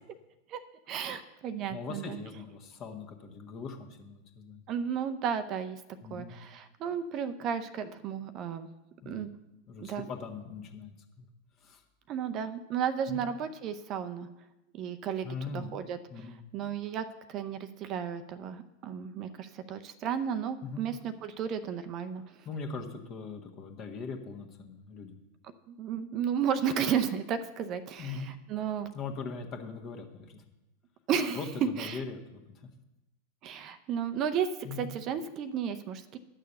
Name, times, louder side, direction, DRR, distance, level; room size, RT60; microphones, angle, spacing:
voice 1, 0.9-2.2 4.7-5.8 6.1-8.7 9.1-9.3 9.8-10.0 12.1-14.3 14.7-15.3 15.5-16.0 16.5-22.2 25.7-28.9 31.1-31.4 31.8-32.0 33.4-34.5 34.8-36.2, right 8 dB, 35° right, 10 dB, 0.6 m, -33 dB
voice 2, 1.7-4.6 6.0-6.3 9.0-9.3 9.7-11.3 11.6-11.8 13.1-13.2 15.2-15.7 16.1-16.4 20.6-20.9 22.2-25.2 28.0-28.3 28.9-30.4 31.3-32.7 34.6-34.9, left 4 dB, 35° left, 4 dB, 1.5 m, -41 dB
11.0 x 6.6 x 6.8 m, 0.98 s
figure-of-eight pair, 90°, 0 cm